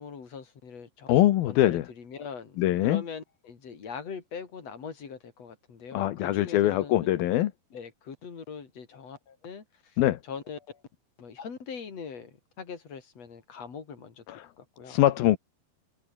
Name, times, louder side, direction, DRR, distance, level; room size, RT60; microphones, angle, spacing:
voice 1, 0.0-7.1 7.7-10.0 10.2-10.8 11.2-15.0, left 6 dB, 45° left, 4.7 m, -42 dB
voice 2, 1.1-1.9 2.6-3.0 5.9-7.5 10.0-10.2 14.3-14.5 14.9-15.4, left 14 dB, 80° left, 3.0 m, -23 dB
open air
omnidirectional pair, 4.2 m